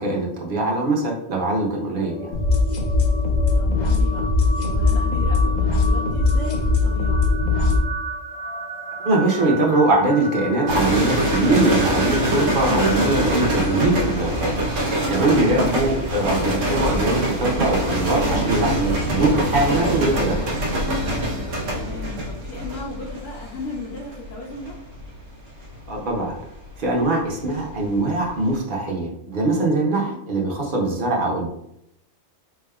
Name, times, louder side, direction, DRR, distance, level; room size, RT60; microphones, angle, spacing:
voice 1, 0.0-2.3 9.0-14.4 15.1-20.6 25.9-26.3 26.8-31.5, right 2 dB, 50° right, -1 dB, 0.9 m, -22 dB
sound 1, 2.0-17.1, right 1 dB, 10° left, 0.6 m, -35 dB
sound 2, 2.3-7.8, left 3 dB, 50° left, 0.6 m, -20 dB
voice 2, 3.6-4.2 4.6-7.2 15.5-15.8 21.8-24.7 30.0-30.2, left 3 dB, 75° left, -3 dB, 1.0 m, -35 dB
sound 3, 10.7-27.9 28.2-28.6, right 1 dB, 80° right, 1.1 m, -24 dB
4.0 x 3.4 x 2.2 m, 0.77 s
omnidirectional pair, 1.3 m